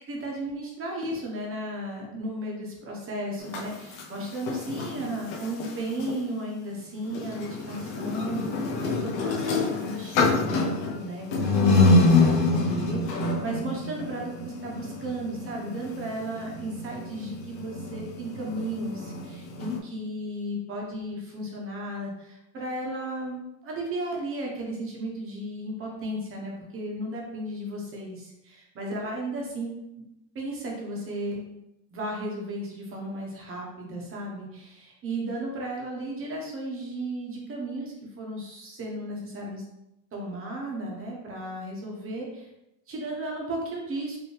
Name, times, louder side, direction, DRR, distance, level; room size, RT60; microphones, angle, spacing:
voice 1, 0.1-29.8 30.3-31.6 31.9-39.6 40.1-42.5 42.9-44.2, right 1 dB, 30° right, -1 dB, 1.2 m, -34 dB
sound 1, 3.4-6.2 7.1-19.8, left 3 dB, 70° left, 1.0 m, -26 dB
5.3 x 3.0 x 3.4 m, 0.87 s
cardioid pair, 160°, 42 cm